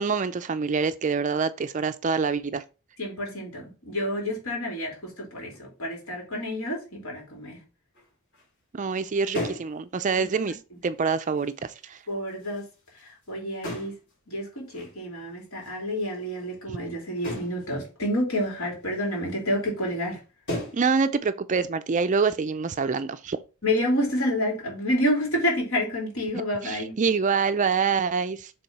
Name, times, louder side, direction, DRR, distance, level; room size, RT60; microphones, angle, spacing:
voice 1, 0.0-2.6 8.7-10.6 10.8-12.0 16.7-16.8 20.7-23.4 26.6-28.5, right 5 dB, 35° right, 0.4 m, -26 dB
voice 2, 3.0-7.6 12.1-12.6 13.0-13.9 14.3-20.2 23.6-26.9, equal, 70° left, 3.2 m, -29 dB
sound 1, 7.9-8.1 8.3-8.5 8.9-9.0 9.3-9.8 10.2-10.3 11.1-11.5 12.2-13.2 13.6-14.1 14.7-14.9 15.6-15.7 17.2-17.6 18.4-18.5 19.0-19.1 19.5-19.6 19.9-20.2 20.5-20.9, left 1 dB, 50° left, 3.5 m, -35 dB
6.9 x 3.6 x 4.7 m
head